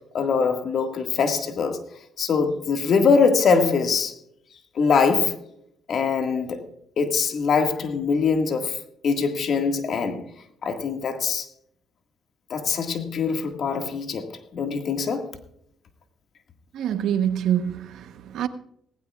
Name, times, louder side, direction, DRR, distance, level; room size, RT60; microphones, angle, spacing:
voice 1, 0.1-1.8 2.2-4.2 4.8-5.4 5.9-6.7 7.0-8.8 9.0-10.2 10.6-11.5 12.5-15.3, left 5 dB, 60° left, 1.8 m, -23 dB
voice 2, 16.7-18.5, right 9 dB, 80° right, 1.0 m, -25 dB
18.0 x 16.0 x 2.4 m
cardioid pair, 90°, 0 cm